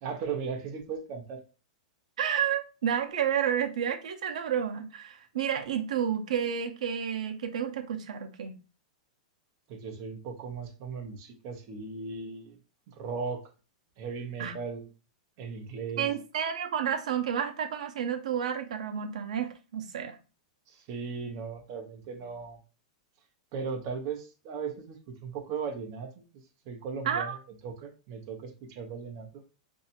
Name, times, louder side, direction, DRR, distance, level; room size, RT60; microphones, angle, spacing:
voice 1, 0.0-1.4 9.7-12.6 12.9-13.5 14.0-14.9 15.4-16.1 20.7-22.6 23.5-26.2 26.7-27.4 27.6-29.4, right 5 dB, 35° right, 0.8 m, -37 dB
voice 2, 2.2-8.6 14.4-14.5 16.0-20.2 27.1-27.4, right 8 dB, 75° right, 0.7 m, -30 dB
2.7 x 2.4 x 4.2 m
supercardioid pair, 175°, 4 cm